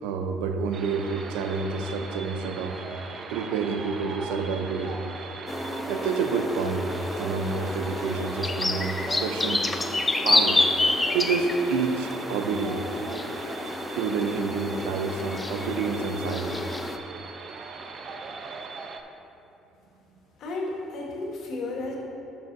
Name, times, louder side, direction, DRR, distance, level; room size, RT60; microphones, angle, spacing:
voice 1, 0.0-2.8 3.3-5.0 5.9-6.9 7.2-9.6 10.2-10.6 11.1-12.9 13.9-16.6, right 5 dB, 85° right, 6 dB, 0.6 m, -28 dB
sound 1, 0.7-19.0, right 4 dB, 50° right, 0.7 m, -39 dB
sound 2, 5.5-17.0, left 2 dB, 20° left, 0.6 m, -29 dB
voice 2, 20.4-22.0, left 2 dB, 65° left, -3 dB, 1.9 m, -33 dB
12.5 x 6.9 x 2.7 m, 2.9 s
supercardioid pair, 75°, 0 cm